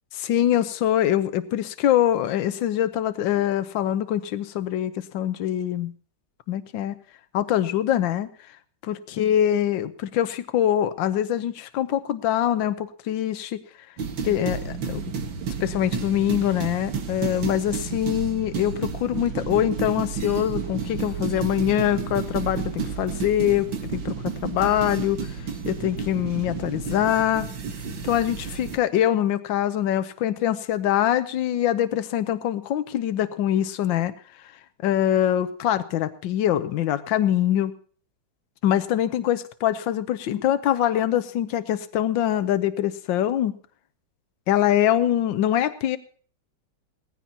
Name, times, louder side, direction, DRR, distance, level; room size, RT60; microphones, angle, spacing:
voice 1, 0.2-5.9 6.5-7.0 7.3-8.3 8.8-13.6 14.2-15.1 15.6-25.3 25.6-27.5 28.0-34.1 34.8-37.7 38.6-43.5 44.5-46.0, left 11 dB, 80° left, 11 dB, 1.5 m, -24 dB
sound 1, 14.0-28.8, right 6 dB, 80° right, 2.3 m, -31 dB
18.5 x 15.5 x 2.9 m, 0.44 s
omnidirectional pair, 2.0 m